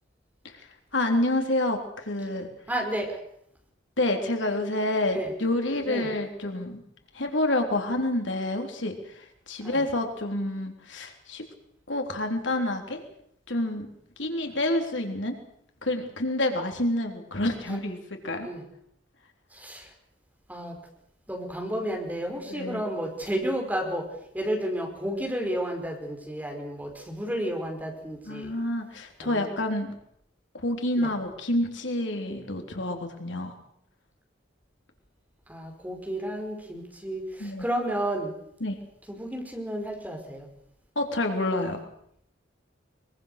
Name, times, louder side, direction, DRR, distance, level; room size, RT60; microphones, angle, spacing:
voice 1, 0.9-2.5 4.0-6.8 7.1-11.4 11.9-13.0 13.5-13.9 14.2-15.3 15.8-18.0 18.2-18.5 22.5-22.8 28.3-29.9 30.5-33.5 37.4-37.7 38.6-38.8 41.0-41.8, left 1 dB, 70° left, 4 dB, 3.5 m, -28 dB
voice 2, 2.7-3.1 5.1-5.3 5.8-6.1 9.6-9.8 17.7-17.8 18.4-18.6 19.6-19.8 20.5-20.7 21.3-24.1 24.3-28.5 29.2-29.5 31.0-31.1 35.5-38.3 39.1-40.5, right 1 dB, 10° right, 2 dB, 5.0 m, -32 dB
23.5 x 22.5 x 6.7 m, 0.70 s
head